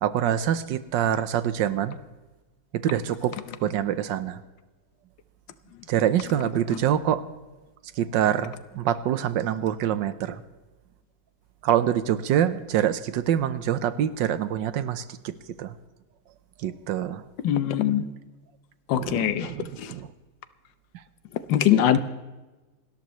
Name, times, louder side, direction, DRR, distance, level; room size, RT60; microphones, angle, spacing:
voice 1, 0.0-2.0 2.8-3.3 3.6-4.4 5.9-7.2 8.0-10.4 11.6-15.3 15.6-15.7 16.6-17.2 19.0-20.1, right 10 dB, 90° right, 13 dB, 1.5 m, -25 dB
voice 2, 17.4-18.1 18.9-19.5 19.8-19.9 21.5-22.0, left 10 dB, 90° left, 12 dB, 1.5 m, -22 dB
27.5 x 13.5 x 3.1 m, 1.2 s
omnidirectional pair, 1.9 m